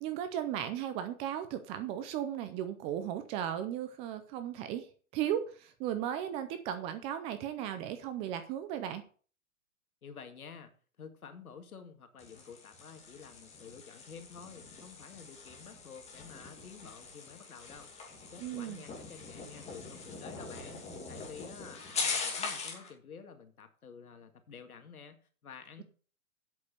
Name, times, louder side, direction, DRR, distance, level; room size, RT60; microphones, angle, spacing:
voice 1, 0.0-4.9 5.1-9.0 18.4-18.8, right 10 dB, 15° right, 10 dB, 0.4 m, -36 dB
voice 2, 10.0-10.7 11.0-25.8, left 6 dB, 90° left, 7 dB, 2.1 m, -51 dB
sound 1, 12.2-22.9, left 4 dB, 15° left, 2.7 m, -42 dB
8.4 x 6.5 x 6.8 m, 0.41 s
hypercardioid pair, 135°, 42 cm